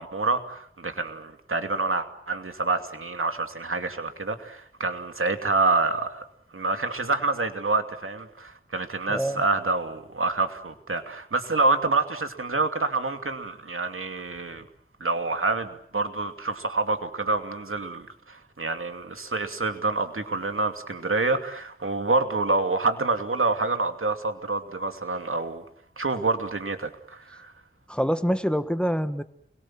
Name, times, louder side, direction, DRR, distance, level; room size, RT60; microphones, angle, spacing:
voice 1, 0.0-6.2 6.5-14.6 15.0-25.6 26.0-27.5, right 3 dB, 80° right, 7 dB, 2.7 m, -27 dB
voice 2, 9.1-9.4 27.9-29.2, equal, 5° left, 11 dB, 1.6 m, -25 dB
28.5 x 22.5 x 7.5 m, 0.65 s
wide cardioid pair, 60°, 21 cm